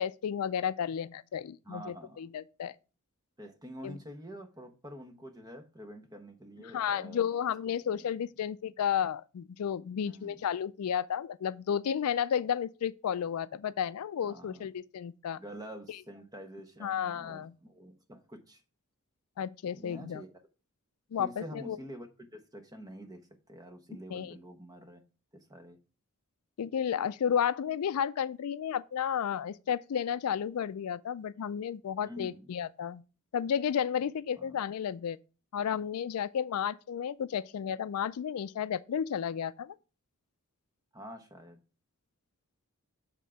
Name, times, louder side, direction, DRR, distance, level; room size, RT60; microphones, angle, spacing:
voice 1, 0.0-2.8 3.8-4.0 6.7-15.4 16.8-17.5 19.4-20.2 21.1-21.8 24.1-24.4 26.6-33.0 33.3-35.2 35.5-39.7, left 8 dB, 75° left, 0.4 m, -32 dB
voice 2, 1.6-2.2 3.4-7.3 7.8-8.0 10.0-10.4 14.2-14.7 15.3-18.6 19.8-20.3 21.2-23.2 23.5-25.0 25.3-25.8 32.0-32.5 34.4-34.6 40.9-41.6, equal, 15° right, 1.0 m, -47 dB
7.3 x 3.7 x 5.6 m
head